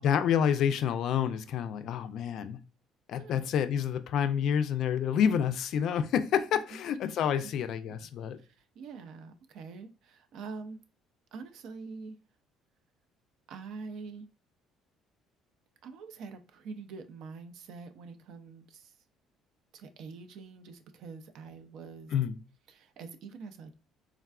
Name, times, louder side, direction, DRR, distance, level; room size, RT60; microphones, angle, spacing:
voice 1, 0.0-2.6 3.1-8.4 22.1-22.4, left 8 dB, 65° left, 0.3 m, -28 dB
voice 2, 3.2-3.5 6.7-6.9 7.9-8.1 8.4-10.8 11.3-12.2 13.5-14.3 15.8-18.9 19.7-22.1 22.7-23.8, right 4 dB, 70° right, 0.4 m, -45 dB
3.4 x 2.3 x 2.2 m
supercardioid pair, 70°, 0 cm